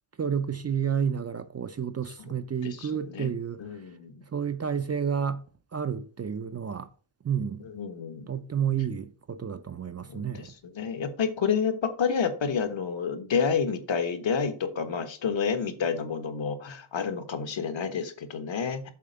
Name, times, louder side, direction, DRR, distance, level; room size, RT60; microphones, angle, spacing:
voice 1, 0.2-3.6 4.3-5.4 5.7-6.9 7.2-7.6 8.3-10.5, right 7 dB, 35° right, 0.4 m, -30 dB
voice 2, 2.6-3.3 3.6-4.2 7.6-8.3 10.1-18.9, left 6 dB, 65° left, 1.4 m, -29 dB
7.4 x 4.2 x 6.7 m
wide cardioid pair, 145°, 49 cm